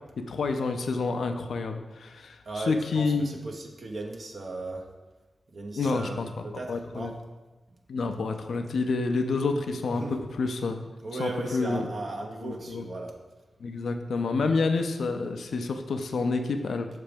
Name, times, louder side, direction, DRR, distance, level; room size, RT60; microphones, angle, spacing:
voice 1, 0.3-3.4 5.8-6.3 6.7-7.1 7.9-10.8 11.1-11.9 12.4-12.9 13.6-16.9, left 4 dB, 80° left, 6 dB, 0.4 m, -28 dB
voice 2, 2.4-4.8 5.5-7.1 9.9-10.1 11.0-13.1, right 2 dB, 65° right, 1 dB, 0.8 m, -36 dB
6.0 x 3.3 x 5.0 m, 1.2 s
cardioid pair, 60°, 0 cm